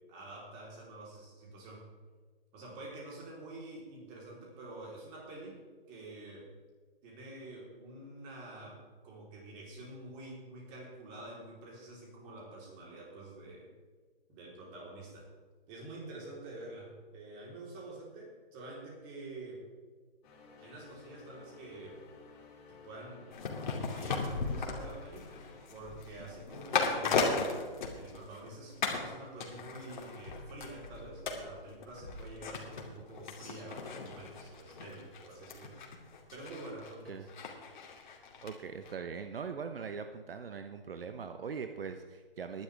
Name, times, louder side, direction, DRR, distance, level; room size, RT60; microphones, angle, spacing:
voice 1, 0.1-1.8 2.5-5.6 5.9-6.5 7.0-13.7 14.3-15.3 15.7-19.6 20.6-22.0 22.8-25.3 25.7-27.7 27.9-35.7 36.3-37.3, right 2 dB, 20° right, -3 dB, 3.9 m, -47 dB
sound 1, 20.2-25.6, left 5 dB, 25° left, 2.5 m, -56 dB
sound 2, 23.3-28.5 28.8-29.1 29.4-38.5 38.8-38.9, left 4 dB, 50° left, 2.5 m, -37 dB
voice 2, 38.4-42.6, right 6 dB, 70° right, 7 dB, 1.0 m, -41 dB
19.5 x 11.0 x 3.5 m, 1.4 s
hypercardioid pair, 150°, 30 cm